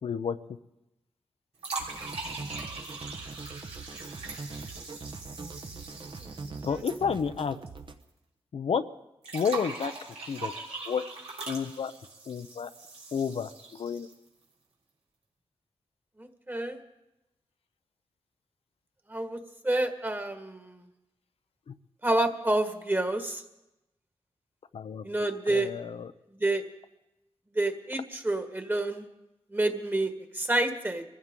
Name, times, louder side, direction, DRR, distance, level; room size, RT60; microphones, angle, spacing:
voice 1, 0.0-0.4 6.6-7.6 8.5-8.8 9.3-9.9 10.3-10.5 10.9-11.0 11.5-11.9 12.3-12.7 13.1-14.1 21.7-21.8 24.7-25.0 25.5-26.1, left 6 dB, 70° left, 10 dB, 0.6 m, -30 dB
sound 1, 1.6-7.8 8.0-8.1 9.2-14.3, right 3 dB, 90° right, 3.5 m, -41 dB
sound 2, 1.8-7.9, right 4 dB, 50° right, 1.0 m, -42 dB
voice 2, 16.2-16.8 19.1-19.4 19.6-20.8 22.0-23.4 25.0-25.7 26.4-26.7 27.5-29.1 29.5-31.0, right 2 dB, 20° right, 6 dB, 1.6 m, -28 dB
23.5 x 15.0 x 3.7 m, 0.93 s
cardioid pair, 75°, 10 cm